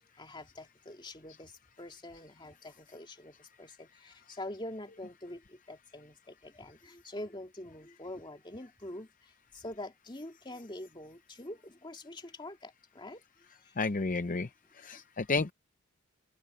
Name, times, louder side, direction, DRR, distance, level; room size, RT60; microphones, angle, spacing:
voice 1, 0.1-13.2 13.5-13.8 14.9-15.0, left 1 dB, 20° left, 2.6 m, -45 dB
voice 2, 13.8-14.5 14.8-15.5, left 3 dB, 40° left, 0.6 m, -31 dB
head